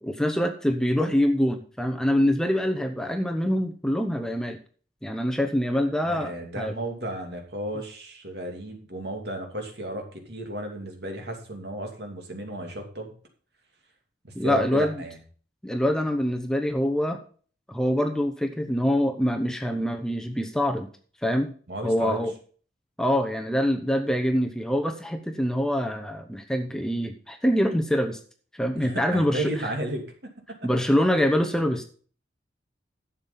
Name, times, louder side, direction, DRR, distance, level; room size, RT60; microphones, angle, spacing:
voice 1, 0.0-4.6 5.0-6.7 14.3-15.0 15.6-17.2 17.7-20.9 21.2-21.5 21.8-22.3 23.0-28.2 28.5-29.7 30.6-31.8, equal, 5° left, 5 dB, 0.8 m, -25 dB
voice 2, 6.1-13.1 14.2-15.2 21.7-22.2 28.8-30.1, right 1 dB, 60° right, 3 dB, 2.7 m, -33 dB
11.5 x 7.4 x 5.4 m, 0.43 s
head